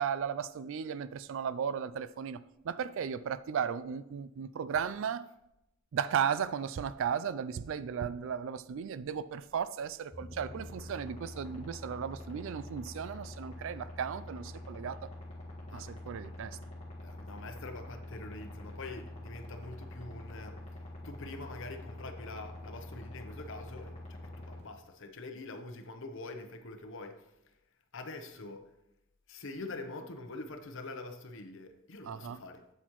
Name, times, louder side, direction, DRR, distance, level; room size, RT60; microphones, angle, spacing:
voice 1, 0.0-5.2 5.9-15.1 15.7-16.6 32.1-32.4, right 7 dB, 65° right, 16 dB, 0.3 m, -35 dB
sound 1, 10.1-24.6, left 1 dB, 30° left, 1.7 m, -45 dB
voice 2, 17.0-20.6 21.0-27.3 27.9-28.6 29.3-32.6, left 2 dB, 65° left, 7 dB, 0.8 m, -45 dB
8.1 x 7.9 x 3.0 m, 0.88 s
head